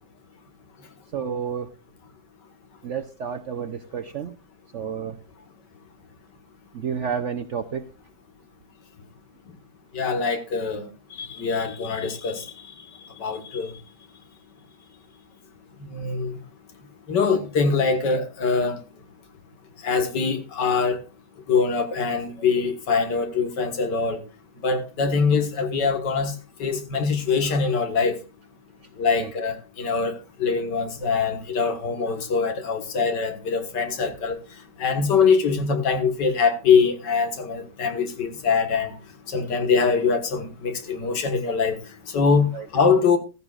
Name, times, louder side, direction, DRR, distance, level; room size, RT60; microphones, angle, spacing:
voice 1, 1.1-1.7 2.8-4.3 4.7-5.2 6.7-7.8 29.2-29.3 42.5-42.7, right 7 dB, 55° right, 0.9 m, -30 dB
voice 2, 10.0-10.9 11.2-12.4 13.2-13.7 15.9-16.3 17.1-18.8 19.8-21.0 21.5-24.2 24.6-26.3 26.6-28.2 29.0-30.2 30.4-34.4 34.8-38.9 39.3-41.8 42.1-42.5 42.7-43.2, left 5 dB, 85° left, 2.2 m, -23 dB
15.0 x 14.5 x 2.4 m
omnidirectional pair, 1.8 m